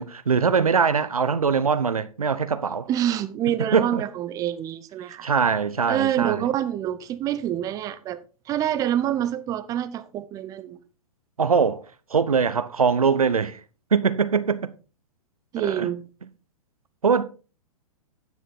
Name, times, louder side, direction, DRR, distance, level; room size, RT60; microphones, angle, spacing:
voice 1, 0.0-2.9 3.7-4.0 5.2-6.4 11.4-11.8 12.1-13.6 13.9-14.7 15.6-15.9 17.0-17.2, right 6 dB, 75° right, 0.8 m, -22 dB
voice 2, 2.9-5.3 5.9-8.2 8.5-10.8 15.5-16.0, right 11 dB, 20° right, 0.6 m, -26 dB
9.5 x 7.3 x 3.8 m
figure-of-eight pair, 110°, 19 cm